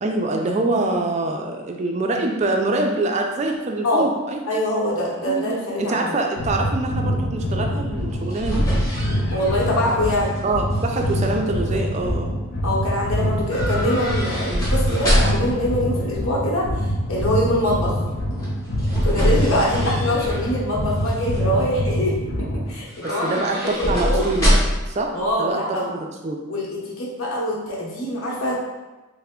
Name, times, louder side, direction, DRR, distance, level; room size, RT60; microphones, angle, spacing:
voice 1, 0.0-4.4 5.2-8.7 10.4-12.4 23.0-24.6 24.9-25.1 25.4-25.6 25.9-26.4, right 2 dB, 30° right, 2 dB, 0.3 m, -25 dB
voice 2, 4.5-6.2 9.3-10.4 12.6-18.0 19.0-23.3 23.6-24.3 25.1-25.9 26.5-28.6, left 1 dB, 90° left, -4 dB, 0.9 m, -24 dB
sound 1, 6.4-22.8, equal, 65° left, 0.6 m, -25 dB
sound 2, 8.0-10.4 10.7-11.3 13.5-15.6 18.4-20.5 20.9-21.4 22.9-25.0 25.2-25.3, equal, 15° left, 0.8 m, -24 dB
3.3 x 2.0 x 3.6 m, 1.2 s
head